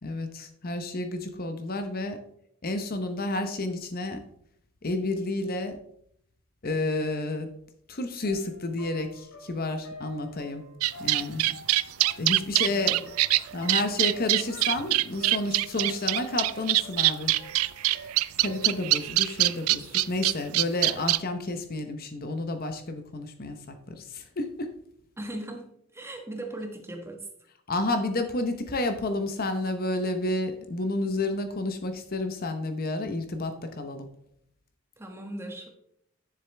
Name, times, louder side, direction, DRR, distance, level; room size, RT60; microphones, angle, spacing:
voice 1, 0.0-2.2 2.6-4.2 4.8-5.8 6.6-7.5 7.9-10.6 11.0-11.4 12.2-13.0 13.5-17.4 17.9-18.1 18.4-24.7 27.7-34.1, left 2 dB, 45° left, 8 dB, 0.8 m, -30 dB
sound 1, 8.1-19.4, left 1 dB, 70° left, 3.3 m, -48 dB
sound 2, 10.8-21.2, right 17 dB, 80° right, 0.4 m, -23 dB
voice 2, 12.6-13.1 25.2-27.3 35.0-35.7, right 1 dB, 10° right, 3 dB, 1.3 m, -38 dB
10.5 x 7.2 x 3.3 m, 0.71 s
head